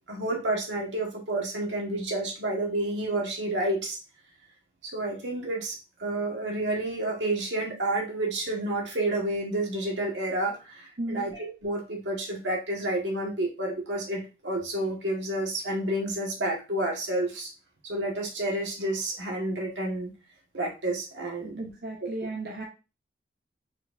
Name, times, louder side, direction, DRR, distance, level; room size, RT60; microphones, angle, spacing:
voice 1, 0.1-4.0 4.8-17.5 17.8-20.1 20.5-21.5 22.0-22.1, right 1 dB, 80° right, -1 dB, 1.6 m, -30 dB
voice 2, 21.4-22.6, right 2 dB, 55° right, -2 dB, 1.0 m, -35 dB
4.5 x 4.5 x 2.6 m, 0.30 s
head